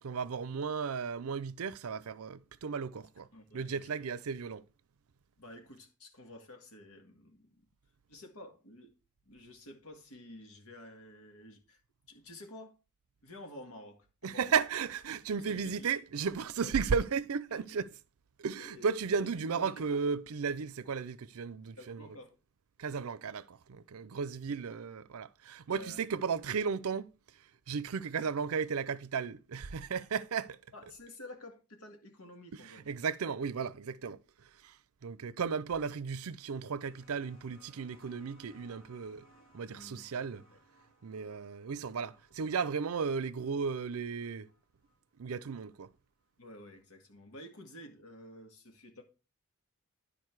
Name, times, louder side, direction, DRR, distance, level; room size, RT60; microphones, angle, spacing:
voice 1, 0.0-3.3 3.5-4.6 14.2-17.9 18.4-22.1 22.8-30.6 32.6-39.3 39.5-40.4 41.0-44.5 45.2-45.9, right 6 dB, 75° right, 0.5 m, -35 dB
voice 2, 3.3-3.9 5.4-7.6 8.1-8.9 9.3-11.8 12.1-12.8 13.2-14.6 15.1-15.9 16.6-16.7 17.5-17.8 18.6-18.9 19.2-19.3 19.5-20.0 21.8-22.3 25.7-26.2 30.7-33.0 39.7-40.1 40.5-40.6 46.4-49.0, left 1 dB, 90° left, 2.0 m, -51 dB
sound 1, 36.4-45.7 46.8-46.9, equal, 60° left, 4.4 m, -65 dB
11.0 x 5.0 x 4.7 m
head